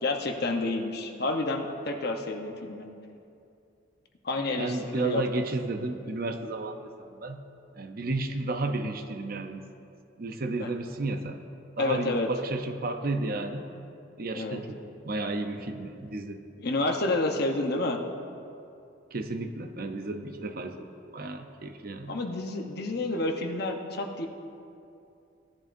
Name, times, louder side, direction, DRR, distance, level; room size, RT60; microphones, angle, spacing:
voice 1, 0.0-2.9 4.2-5.2 10.6-10.7 11.8-12.3 14.3-14.6 16.6-18.0 22.1-24.3, left 2 dB, 55° left, 3 dB, 0.9 m, -29 dB
voice 2, 4.6-7.4 7.8-9.6 10.2-11.4 11.8-13.7 14.2-14.8 15.0-16.4 19.1-20.9 21.1-22.1, right 2 dB, 50° right, 6 dB, 0.7 m, -32 dB
17.5 x 10.5 x 2.6 m, 2.6 s
head